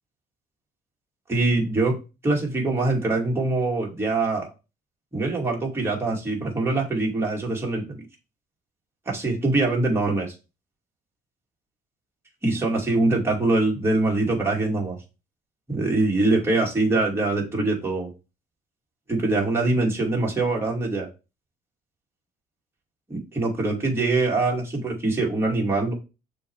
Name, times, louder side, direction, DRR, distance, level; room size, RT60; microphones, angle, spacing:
voice 1, 1.3-2.0 2.2-4.5 5.1-8.0 9.1-10.3 12.4-15.0 15.7-18.1 19.1-21.1 23.1-25.9, right 2 dB, 15° right, -2 dB, 2.6 m, -23 dB
6.7 x 3.4 x 4.8 m, 0.29 s
cardioid pair, 110°, 17 cm